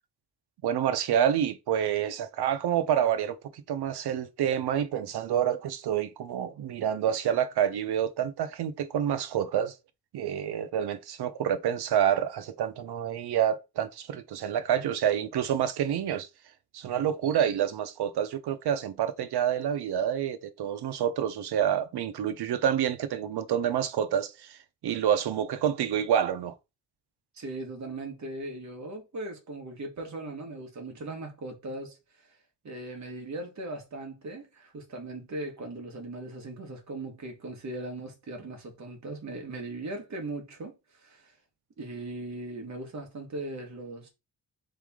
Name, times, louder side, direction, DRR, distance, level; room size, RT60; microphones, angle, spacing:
voice 1, 0.6-9.8 10.1-16.3 16.7-24.6 24.8-26.5, right 9 dB, 90° right, 0.7 m, -28 dB
voice 2, 27.3-32.0 32.6-40.7 41.0-41.3 41.8-44.1, right 2 dB, 45° right, 1.4 m, -39 dB
4.2 x 3.3 x 3.6 m
wide cardioid pair, 150°, 38 cm